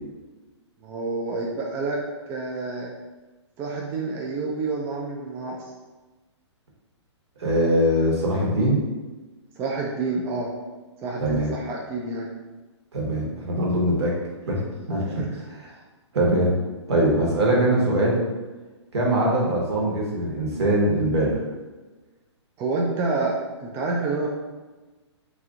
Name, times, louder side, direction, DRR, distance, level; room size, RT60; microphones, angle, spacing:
voice 1, 0.8-2.0 2.3-2.9 3.6-5.6 9.6-10.5 11.0-12.3 15.2-15.4 22.6-24.3, right 3 dB, 15° right, -2 dB, 0.3 m, -28 dB
voice 2, 7.4-8.8 11.2-11.5 12.9-14.1 14.5-14.6 14.9-15.0 16.1-16.5 16.9-18.2 18.9-21.4, right 1 dB, 65° right, -3 dB, 1.2 m, -22 dB
3.0 x 2.6 x 3.6 m, 1.2 s
hypercardioid pair, 130°, 15 cm